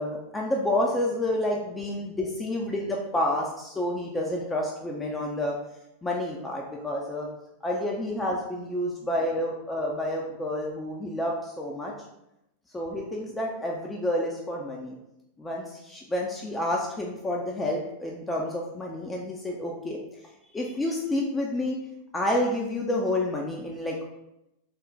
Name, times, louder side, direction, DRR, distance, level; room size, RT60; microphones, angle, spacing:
voice 1, 0.0-5.6 6.0-7.3 7.6-11.9 12.7-15.0 15.4-20.0 20.5-21.8 22.1-24.1, left 1 dB, 10° left, -1 dB, 0.4 m, -29 dB
3.3 x 2.2 x 4.0 m, 0.86 s
figure-of-eight pair, 90°, 0 cm